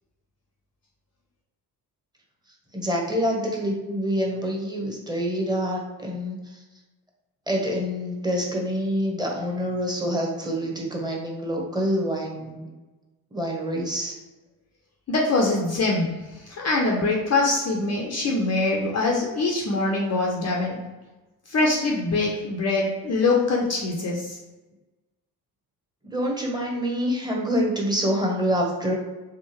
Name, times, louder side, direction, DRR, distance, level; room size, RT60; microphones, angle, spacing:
voice 1, 2.7-6.6 7.5-12.7 13.3-14.1 26.1-28.9, equal, 10° right, -1 dB, 1.1 m, -26 dB
voice 2, 15.1-16.1 16.5-20.8 21.5-24.4, left 3 dB, 30° left, -1 dB, 0.6 m, -23 dB
3.5 x 2.5 x 3.1 m, 1.1 s
hypercardioid pair, 50°, 50 cm